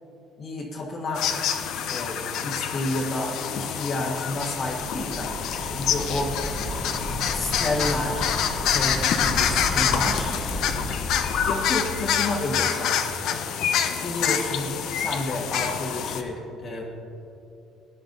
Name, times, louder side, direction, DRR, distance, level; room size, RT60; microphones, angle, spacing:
voice 1, 0.4-1.6 1.9-6.4 7.3-8.4 8.7-10.4 10.7-10.8 11.3-13.4 14.0-16.8, left 2 dB, 40° left, -2 dB, 1.5 m, -31 dB
sound 1, 1.2-16.2, left 8 dB, 70° left, 0.8 m, -27 dB
Waves surf, 4.2-11.8, equal, 5° left, 1.1 m, -33 dB
18.0 x 10.5 x 2.7 m, 2.8 s
cardioid pair, 130°, 0 cm